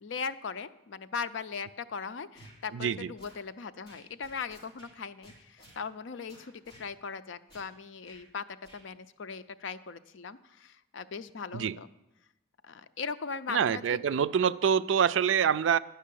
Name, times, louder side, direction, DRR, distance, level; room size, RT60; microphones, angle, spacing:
voice 1, 0.0-6.5 6.8-8.4 8.7-11.9 12.6-14.3, left 5 dB, 85° left, 0.5 m, -39 dB
sound 1, 2.3-2.6 3.2-3.4 3.9-4.9 5.2-5.8 6.3-6.9 7.5-7.7 8.0-8.2 8.6-8.8, equal, 25° left, 4.1 m, -55 dB
voice 2, 2.7-3.1 11.5-11.8 13.5-15.8, right 7 dB, 85° right, 0.4 m, -26 dB
11.0 x 5.6 x 8.4 m
head